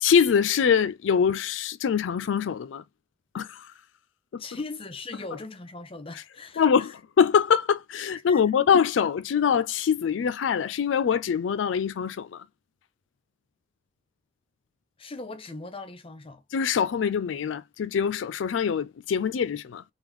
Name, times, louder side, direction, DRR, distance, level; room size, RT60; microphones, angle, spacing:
voice 1, 0.0-2.8 3.3-3.7 4.3-4.4 6.6-12.4 16.5-19.8, left 7 dB, 80° left, 0.4 m, -24 dB
voice 2, 4.4-6.9 8.3-8.7 15.0-16.4, left 3 dB, 30° left, 0.7 m, -39 dB
3.5 x 3.4 x 3.0 m
head